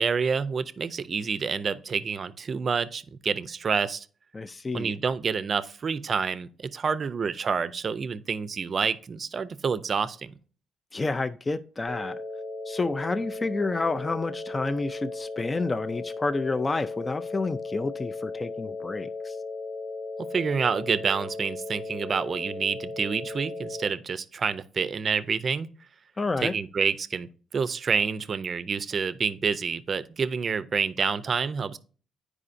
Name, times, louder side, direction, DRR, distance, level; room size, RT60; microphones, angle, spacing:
voice 1, 0.0-4.1 4.7-10.3 20.3-25.7 26.4-27.3 27.5-31.8, right 5 dB, 45° right, 0.5 m, -28 dB
voice 2, 4.3-4.9 10.9-12.1 12.7-19.4 26.2-26.5, left 3 dB, 25° left, 0.3 m, -29 dB
sound 1, 11.9-23.9, left 3 dB, 90° left, 0.9 m, -36 dB
9.7 x 4.9 x 2.5 m
cardioid pair, 90°, 0 cm